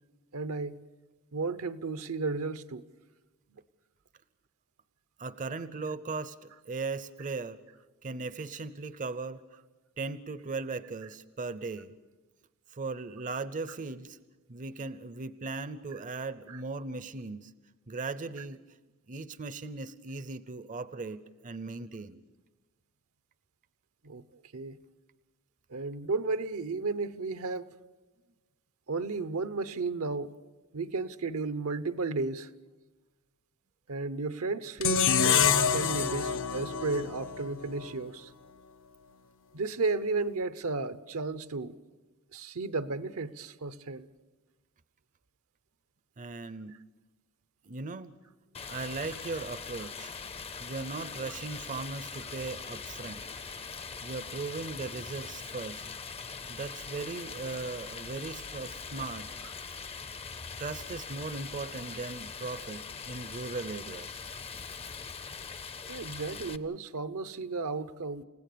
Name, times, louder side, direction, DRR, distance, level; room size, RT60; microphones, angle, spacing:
voice 1, 0.3-0.8 1.3-2.8 3.5-3.6 16.5-16.6 24.0-24.8 25.7-27.7 28.9-30.4 30.7-32.5 33.9-38.3 39.5-41.8 42.3-44.1 65.9-68.2, right 3 dB, 75° right, 0.8 m, -33 dB
voice 2, 5.2-7.6 8.0-9.6 10.0-11.9 12.7-14.2 14.5-17.5 17.9-18.6 19.1-22.2 46.2-46.8 47.7-48.1 48.7-50.1 50.6-53.3 54.0-55.9 56.5-59.3 60.6-64.2, right 3 dB, 35° right, 0.6 m, -38 dB
sound 1, 34.8-38.0, left 7 dB, 60° left, 0.8 m, -27 dB
Stream, 48.5-66.6, left 5 dB, 25° left, 0.6 m, -42 dB
29.5 x 17.0 x 6.8 m
head